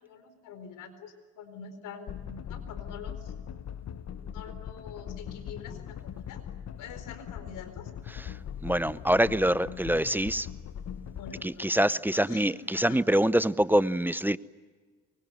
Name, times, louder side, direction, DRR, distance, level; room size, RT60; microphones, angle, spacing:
voice 1, 0.0-3.2 3.8-6.4 6.8-7.9 11.2-11.8 12.1-13.0, left 6 dB, 90° left, 9 dB, 4.4 m, -46 dB
sound 1, 2.1-11.5, left 9 dB, 60° left, 1.4 m, -40 dB
voice 2, 8.6-10.5 11.4-14.4, right 1 dB, 5° right, 16 dB, 0.7 m, -25 dB
25.0 x 23.5 x 9.3 m, 1.5 s
cardioid pair, 90°, 30 cm